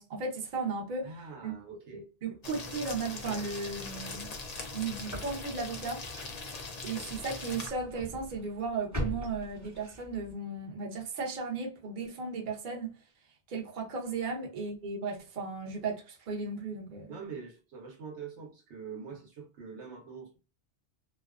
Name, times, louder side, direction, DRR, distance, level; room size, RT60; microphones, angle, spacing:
voice 1, 0.0-1.5 1.9-4.3 4.7-6.0 6.8-12.9 13.5-17.2, right 4 dB, 50° right, 0.8 m, -36 dB
voice 2, 1.0-2.0 14.2-14.4 17.1-20.4, right 5 dB, 80° right, 1.1 m, -44 dB
sound 1, 2.4-7.7, left 3 dB, 50° left, 0.5 m, -41 dB
sound 2, 2.8-10.3, equal, 20° right, 0.6 m, -43 dB
2.5 x 2.2 x 2.3 m
omnidirectional pair, 1.2 m